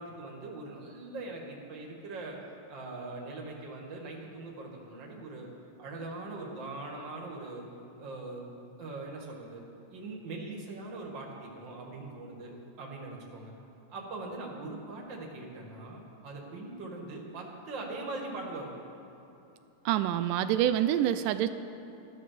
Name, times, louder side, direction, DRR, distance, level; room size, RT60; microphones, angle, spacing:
voice 1, 0.0-2.4 2.7-5.5 5.8-7.6 8.0-8.4 8.8-13.5 13.9-18.7, right 2 dB, 40° right, -1 dB, 2.5 m, -41 dB
voice 2, 19.9-21.5, right 11 dB, 85° right, 11 dB, 2.2 m, -26 dB
14.0 x 12.5 x 6.8 m, 3.0 s
omnidirectional pair, 3.7 m